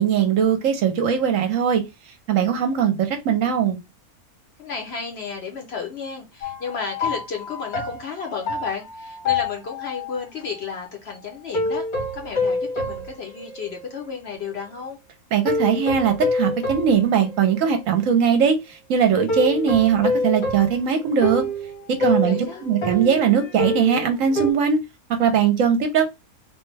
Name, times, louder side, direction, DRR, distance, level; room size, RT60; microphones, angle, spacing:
voice 1, 0.0-1.8 2.3-3.8 15.3-18.6 18.9-21.4 22.0-22.4 22.6-24.8 25.2-26.1, right 7 dB, 70° right, 1.0 m, -20 dB
voice 2, 4.6-11.9 12.1-15.0 22.0-22.7, left 5 dB, 55° left, 0.8 m, -33 dB
sound 1, 6.4-10.2 11.5-14.1 14.5-14.6 15.5-17.9 19.3-24.5, left 2 dB, 80° left, 1.6 m, -27 dB
3.1 x 2.2 x 3.1 m
omnidirectional pair, 1.6 m